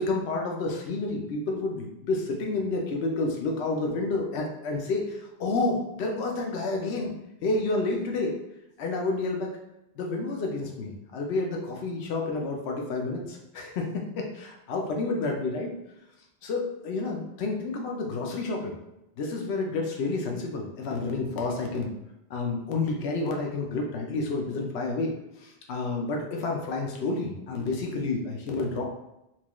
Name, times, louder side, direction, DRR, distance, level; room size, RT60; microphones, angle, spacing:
voice 1, 0.0-7.1 7.4-8.3 8.8-9.5 10.0-13.8 14.2-15.7 16.4-18.7 19.2-21.9 22.3-25.1 25.4-28.8, left 3 dB, 85° left, 1 dB, 0.9 m, -29 dB
4.3 x 2.3 x 2.9 m, 0.88 s
omnidirectional pair, 1.1 m